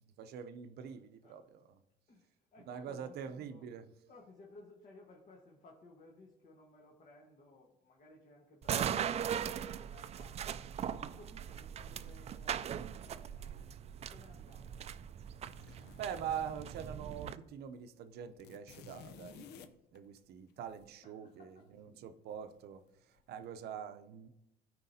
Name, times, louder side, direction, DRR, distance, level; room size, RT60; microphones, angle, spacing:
voice 1, 0.2-1.6 2.7-3.9 15.7-24.3, right 8 dB, 70° right, 0.6 m, -44 dB
voice 2, 2.1-3.7 4.1-10.5 10.8-14.9 21.0-22.1, left 2 dB, 50° left, 1.4 m, -59 dB
sound 1, 8.6-17.4, right 9 dB, 40° right, 0.4 m, -40 dB
sound 2, 15.4-17.1 17.4-17.5 17.8-20.9 22.3-22.8 23.2-23.5, left 6 dB, 80° left, 0.6 m, -55 dB
13.5 x 4.5 x 2.8 m
cardioid pair, 110°, 17 cm